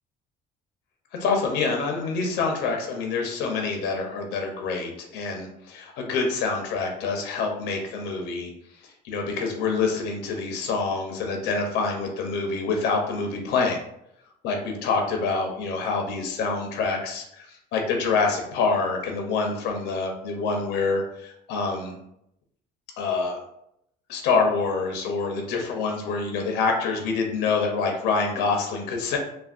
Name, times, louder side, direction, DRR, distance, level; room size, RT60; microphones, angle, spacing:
voice 1, 1.2-8.5 9.0-13.8 14.4-17.5 17.7-21.9 23.0-23.4 24.1-29.2, left 4 dB, 90° left, 2 dB, 0.7 m, -26 dB
3.3 x 2.2 x 2.4 m, 0.76 s
cardioid pair, 110°, 17 cm